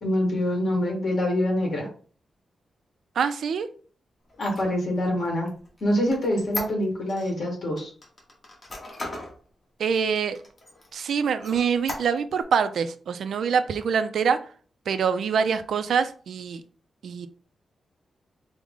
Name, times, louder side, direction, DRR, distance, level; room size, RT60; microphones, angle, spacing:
voice 1, 0.0-1.9 4.4-5.5 5.8-7.9, left 1 dB, 50° left, 1.6 m, -25 dB
voice 2, 3.2-3.7 9.8-10.4 10.9-14.4 14.9-16.6 17.0-17.3, right 6 dB, 75° right, 0.4 m, -25 dB
Squeak, 4.3-7.3 7.8-9.4 9.8-9.9 10.3-11.0 11.4-12.4, left 2 dB, 30° left, 1.1 m, -37 dB
4.7 x 2.1 x 3.6 m
wide cardioid pair, 155°, 0 cm